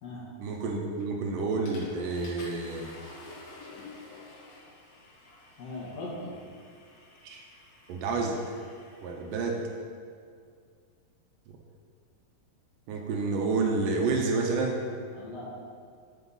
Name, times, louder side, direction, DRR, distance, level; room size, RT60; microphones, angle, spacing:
voice 1, 0.4-2.9 7.2-7.4 7.9-8.6 9.0-9.7 12.9-14.8, right 3 dB, 75° right, 1 dB, 2.2 m, -29 dB
Water / Toilet flush, 1.0-1.2 1.7-9.5, left 3 dB, 80° left, 3.5 m, -50 dB
voice 2, 5.6-6.4 15.1-15.4, left 2 dB, 50° left, -5 dB, 2.6 m, -39 dB
9.8 x 5.1 x 5.5 m, 2.2 s
omnidirectional pair, 4.1 m